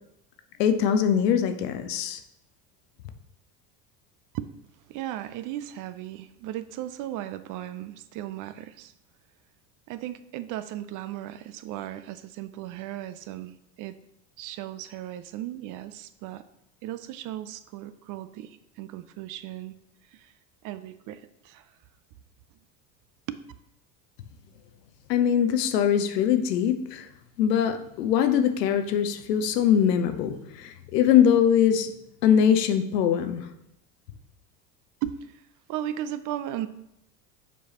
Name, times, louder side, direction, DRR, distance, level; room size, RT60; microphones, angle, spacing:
voice 1, 0.6-2.2 25.1-27.1 27.4-31.9 32.2-33.5, left 8 dB, 80° left, 9 dB, 0.7 m, -22 dB
voice 2, 4.9-8.9 9.9-13.9 14.4-16.4 16.8-19.7 20.1-20.3 20.6-21.7 23.3-23.4 35.0-35.4 35.7-36.7, right 12 dB, 45° right, 13 dB, 0.4 m, -36 dB
7.0 x 4.7 x 2.9 m, 0.81 s
hypercardioid pair, 80°, 48 cm